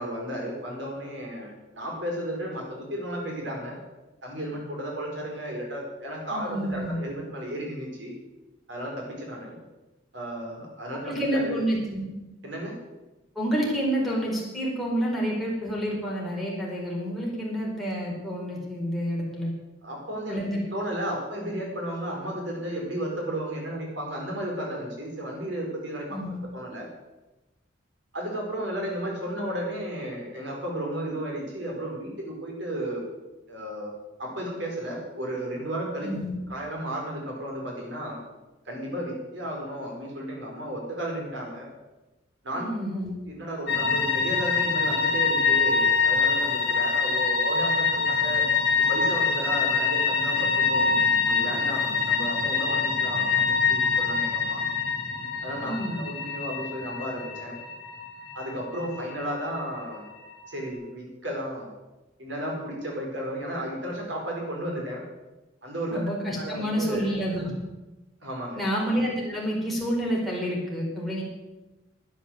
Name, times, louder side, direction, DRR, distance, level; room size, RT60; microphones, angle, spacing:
voice 1, 0.0-3.8 4.2-8.1 8.7-9.6 10.1-11.6 12.4-12.8 19.8-20.4 20.7-26.1 26.5-26.9 28.1-33.0 33.5-33.9 34.2-36.1 36.5-38.2 38.6-41.7 42.4-42.6 43.3-48.5 48.7-50.9 51.2-54.6 55.4-57.6 58.3-60.1 60.5-61.7 62.2-65.0 65.6-66.0 66.3-67.1 68.2-68.6, right 1 dB, 65° right, -1 dB, 4.9 m, -33 dB
voice 2, 6.3-7.0 11.0-12.0 13.3-19.5 20.3-20.6 26.1-26.4 36.0-36.4 42.5-43.1 55.6-56.0 65.9-67.5 68.6-71.2, equal, ahead, -5 dB, 4.6 m, -29 dB
sound 1, 43.7-60.7, left 5 dB, 55° left, 2.8 m, -25 dB
12.0 x 10.0 x 7.9 m, 1.1 s
head